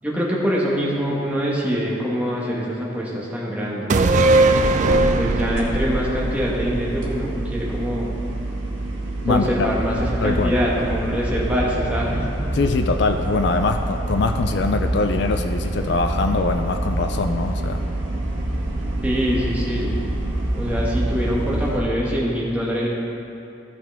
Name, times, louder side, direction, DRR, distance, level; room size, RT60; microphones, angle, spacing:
voice 1, 0.0-4.1 4.8-8.1 9.3-10.0 10.2-12.2 19.0-19.9 20.5-22.9, equal, 5° right, -5 dB, 1.3 m, -24 dB
sound 1, 3.9-7.5 7.8-7.9, right 2 dB, 35° right, 0.3 m, -19 dB
sound 2, 4.9-21.8, right 1 dB, 75° right, 1.5 m, -26 dB
voice 2, 9.2-9.7 10.2-10.6 12.5-17.8, left 3 dB, 60° left, 6 dB, 0.4 m, -23 dB
14.5 x 5.8 x 3.5 m, 2.7 s
head